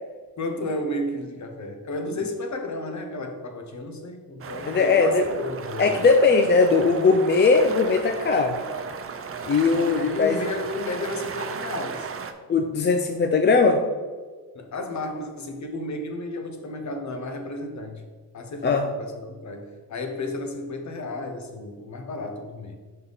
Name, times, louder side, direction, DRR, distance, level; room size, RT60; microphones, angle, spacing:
voice 1, 0.4-6.0 10.1-12.1 14.5-18.0 18.3-22.8, left 2 dB, 45° left, 5 dB, 1.0 m, -32 dB
sound 1, 4.4-12.3, right 5 dB, 35° right, 0.5 m, -35 dB
voice 2, 4.7-5.2 5.8-8.6 9.4-10.4 12.5-13.8 18.6-18.9, left 4 dB, 30° left, 5 dB, 0.4 m, -19 dB
5.6 x 5.4 x 4.0 m, 1.5 s
cardioid pair, 110°, 39 cm